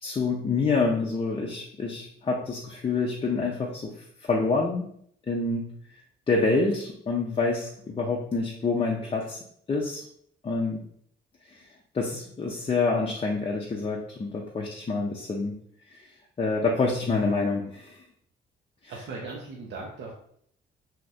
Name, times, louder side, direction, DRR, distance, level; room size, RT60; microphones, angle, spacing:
voice 1, 0.0-3.9 4.2-4.9 5.3-5.7 6.3-9.4 9.7-10.0 10.4-10.8 11.9-15.5 16.4-18.0, left 3 dB, 30° left, -2 dB, 0.5 m, -27 dB
voice 2, 18.9-20.1, right 3 dB, 60° right, -2 dB, 0.7 m, -38 dB
2.7 x 2.5 x 3.3 m, 0.66 s
cardioid pair, 90°, 20 cm